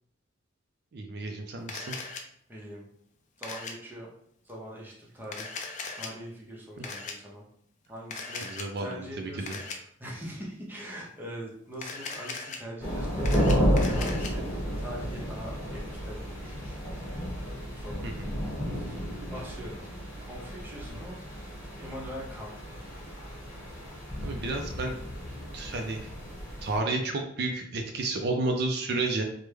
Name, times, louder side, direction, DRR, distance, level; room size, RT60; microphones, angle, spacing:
voice 1, 0.9-1.9 8.4-9.6 18.0-18.3 20.9-21.0 24.2-24.9 25.5-26.1 26.6-29.2, right 2 dB, 55° right, 3 dB, 0.4 m, -31 dB
Camera, 1.7-2.2 3.4-3.7 5.2-6.1 6.8-7.1 8.1-8.7 9.5-9.8 11.7-12.6 13.0-14.3, left 4 dB, 40° left, 0.4 m, -38 dB
voice 2, 2.5-2.8 3.4-4.1 4.4-5.5 5.9-7.4 7.9-9.6 10.0-16.8 17.0-17.2 17.7-18.1 18.7-19.0 19.3-19.8 20.2-21.2 21.8-22.8, equal, 10° right, -3 dB, 0.6 m, -42 dB
sound 1, 12.8-26.8, equal, 10° left, 1.0 m, -32 dB
3.3 x 2.1 x 3.2 m, 0.66 s
head